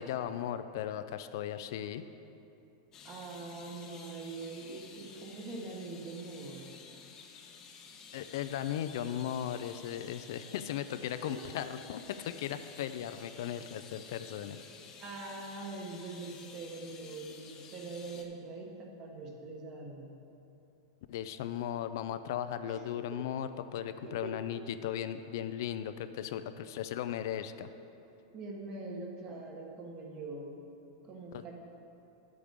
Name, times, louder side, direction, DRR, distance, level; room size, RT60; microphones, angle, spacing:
voice 1, 0.0-2.1 8.1-14.6 21.1-27.7 31.3-31.4, left 10 dB, 60° left, 11 dB, 0.4 m, -37 dB
sound 1, 2.9-18.2, left 5 dB, 25° left, 0.7 m, -52 dB
voice 2, 3.0-6.7 11.2-11.4 15.0-20.1 22.7-22.8 24.0-24.4 28.3-30.6 31.0-31.5, right 3 dB, 30° right, 0 dB, 1.3 m, -43 dB
10.5 x 8.4 x 3.6 m, 2.8 s
supercardioid pair, 150°, 2 cm